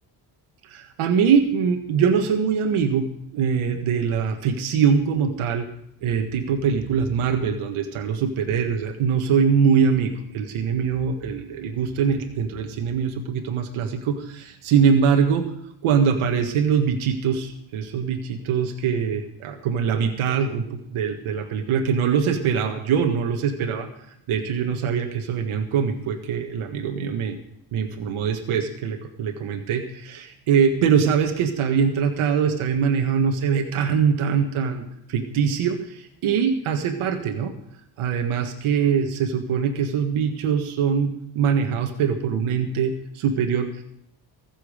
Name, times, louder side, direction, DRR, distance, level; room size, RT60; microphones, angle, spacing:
voice 1, 0.7-3.1 3.3-5.7 6.0-15.5 15.8-23.9 24.3-27.4 27.7-37.5 38.0-43.7, right 6 dB, 85° right, 6 dB, 1.7 m, -23 dB
22.0 x 7.6 x 5.1 m, 0.72 s
cardioid pair, 90°, 48 cm